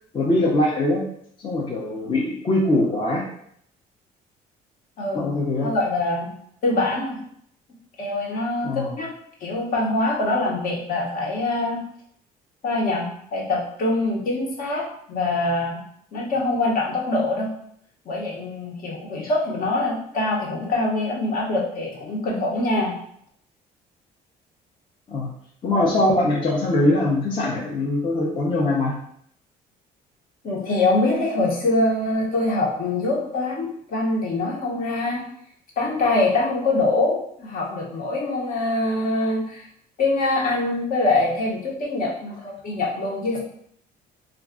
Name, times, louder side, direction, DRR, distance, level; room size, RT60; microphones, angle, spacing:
voice 1, 0.1-1.0 1.4-3.2 5.1-5.7 8.6-8.9 25.1-25.3 25.6-28.9, left 1 dB, 30° left, -3 dB, 0.5 m, -22 dB
voice 2, 5.0-5.4 5.6-6.3 6.6-7.2 8.0-8.7 9.0-9.1 9.4-11.8 12.6-15.8 16.1-17.5 18.0-22.9 30.4-35.2 35.8-39.7 40.0-43.4, left 2 dB, 55° left, -2 dB, 0.9 m, -24 dB
2.3 x 2.2 x 3.6 m, 0.67 s
cardioid pair, 110°, 17 cm